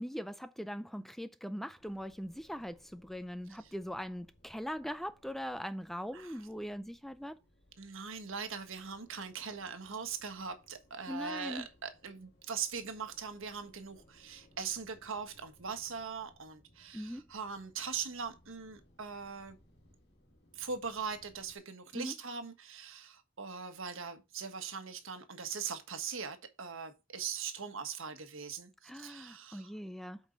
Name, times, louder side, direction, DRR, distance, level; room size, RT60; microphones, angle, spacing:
voice 1, 0.0-7.4 11.1-11.7 16.9-17.2 21.9-22.1 28.8-30.2, equal, ahead, 0.4 m, -41 dB
sound 1, 1.8-21.6, left 1 dB, 50° left, 2.0 m, -66 dB
voice 2, 7.8-19.6 20.5-29.7, right 6 dB, 60° right, 1.4 m, -41 dB
8.3 x 5.4 x 3.9 m
head